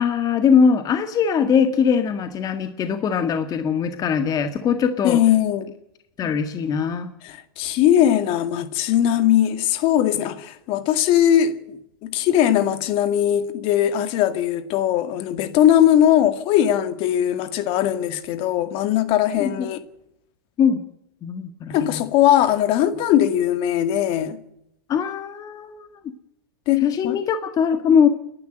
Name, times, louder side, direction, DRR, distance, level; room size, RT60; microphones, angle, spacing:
voice 1, 0.0-5.2 6.2-7.1 19.4-19.7 20.6-20.8 21.2-22.1 24.9-25.9 26.8-28.1, left 6 dB, 30° left, 1.7 m, -21 dB
voice 2, 5.0-5.7 7.2-19.8 21.7-24.4 26.7-27.2, left 11 dB, 45° left, 2.1 m, -20 dB
29.0 x 11.5 x 7.9 m
hypercardioid pair, 120°, 12 cm